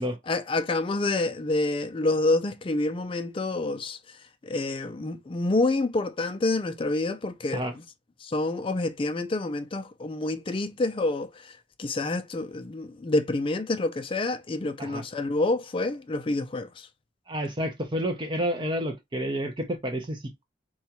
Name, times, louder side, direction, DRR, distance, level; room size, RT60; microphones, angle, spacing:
voice 1, 0.3-4.0 4.4-7.6 8.2-11.5 11.8-16.9, left 2 dB, 25° left, 0.4 m, -27 dB
voice 2, 17.3-20.5, equal, 25° right, 0.5 m, -30 dB
4.0 x 2.3 x 2.8 m
head